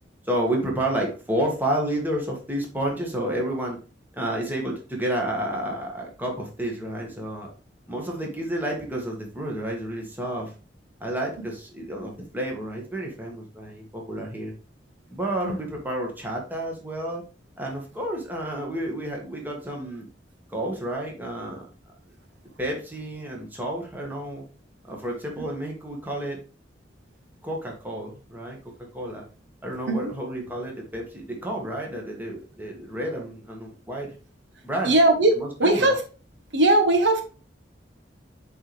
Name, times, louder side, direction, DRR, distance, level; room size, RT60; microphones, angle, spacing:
voice 1, 0.2-3.8 4.1-7.5 7.9-10.5 11.0-14.5 15.1-17.2 17.6-20.1 20.5-21.7 22.6-24.4 24.9-26.4 27.4-28.6 28.9-29.2 29.6-34.1 34.6-35.0 35.4-35.9, right 1 dB, 10° right, -1 dB, 1.7 m, -30 dB
voice 2, 34.8-36.0 36.5-37.2, right 2 dB, 75° right, 5 dB, 1.2 m, -20 dB
7.7 x 4.1 x 3.3 m, 0.35 s
head